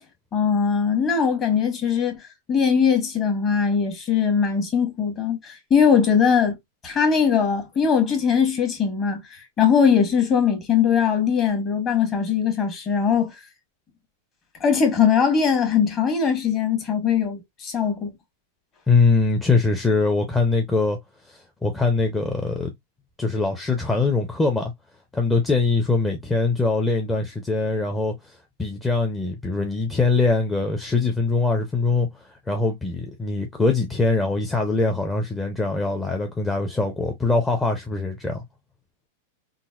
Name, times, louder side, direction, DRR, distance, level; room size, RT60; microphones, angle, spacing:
voice 1, 0.3-2.2 2.5-6.6 6.8-9.2 9.6-13.3 14.6-18.1, left 7 dB, 30° left, 1.4 m, -20 dB
voice 2, 18.9-21.0 21.3-22.7 23.2-24.7 25.1-28.3 28.6-38.4, left 3 dB, 10° left, 0.6 m, -22 dB
3.8 x 2.1 x 2.4 m
hypercardioid pair, 130°, 0 cm